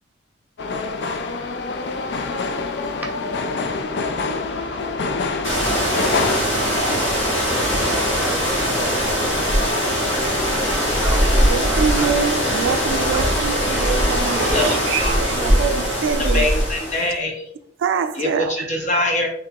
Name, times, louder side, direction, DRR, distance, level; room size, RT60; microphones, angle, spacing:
sound 1, 0.6-6.4, left 3 dB, 60° left, 0.4 m, -26 dB
voice 1, 4.2-10.2 10.5-12.2 13.0-14.0 14.3-15.6, right 1 dB, 10° right, 0.7 m, -36 dB
sound 2, 5.4-17.1, equal, 75° left, 1.3 m, -20 dB
voice 2, 11.5-16.5 17.8-18.6, right 6 dB, 75° right, 0.3 m, -25 dB
voice 3, 14.5-15.2 16.2-17.4 18.1-19.3, left 2 dB, 40° left, 0.8 m, -24 dB
3.5 x 2.9 x 3.5 m
head